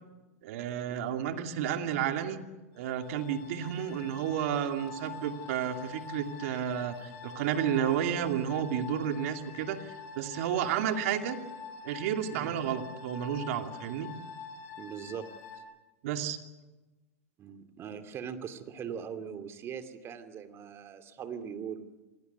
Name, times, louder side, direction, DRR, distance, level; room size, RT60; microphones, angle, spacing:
voice 1, 0.4-2.4 2.7-11.4 11.8-14.1 16.0-16.4, right 9 dB, 65° right, 5 dB, 2.6 m, -31 dB
sound 1, 2.8-15.6, left 5 dB, 55° left, 6.2 m, -46 dB
voice 2, 14.8-15.3 17.4-21.9, right 7 dB, 30° right, 8 dB, 2.5 m, -41 dB
26.5 x 19.0 x 8.2 m, 1.1 s
hypercardioid pair, 120°, 8 cm